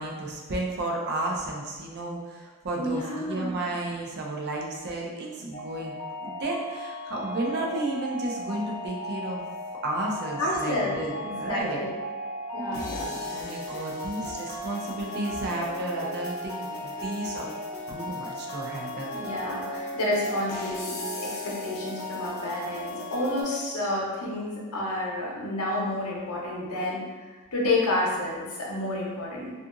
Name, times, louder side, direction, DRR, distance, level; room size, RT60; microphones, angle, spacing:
voice 1, 0.0-9.4 9.8-11.8 12.6-17.5 17.9-19.2, right 2 dB, 50° right, -1 dB, 0.5 m, -33 dB
voice 2, 2.8-3.6 10.4-11.9 12.5-13.5 18.0-18.1 19.1-27.0 27.5-29.5, left 1 dB, 70° left, -3 dB, 0.7 m, -30 dB
sound 1, 5.5-23.4, left 1 dB, 35° left, 0.7 m, -36 dB
2.7 x 2.4 x 2.4 m, 1.4 s
head